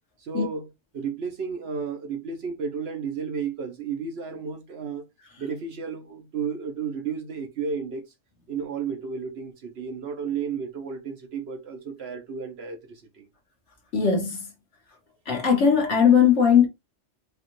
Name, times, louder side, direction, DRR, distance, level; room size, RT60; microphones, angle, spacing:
voice 1, 0.2-0.7 0.9-5.0 5.4-8.1 8.5-13.3, right 6 dB, 60° right, 0.9 m, -32 dB
voice 2, 13.9-14.4 15.3-16.7, left 7 dB, 65° left, 1.6 m, -19 dB
4.9 x 2.4 x 3.0 m
omnidirectional pair, 1.3 m